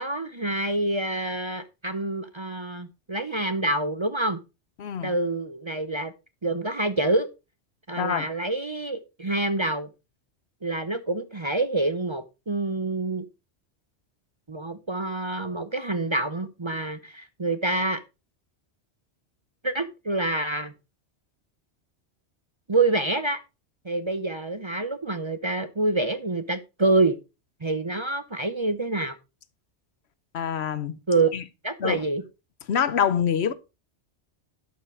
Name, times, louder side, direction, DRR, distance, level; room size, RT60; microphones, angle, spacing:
voice 1, 0.0-4.4 5.0-6.1 6.4-7.3 7.9-9.9 10.6-13.3 14.5-18.0 19.6-20.7 22.7-23.4 23.8-27.2 27.6-29.2 31.1-31.3 31.6-32.2, right 2 dB, 30° right, 0.7 m, -27 dB
voice 2, 4.8-5.1 8.0-8.3 30.3-30.9 31.3-31.4 31.8-32.0 32.7-33.5, left 8 dB, 70° left, 1.0 m, -25 dB
11.5 x 5.6 x 4.7 m
omnidirectional pair, 1.2 m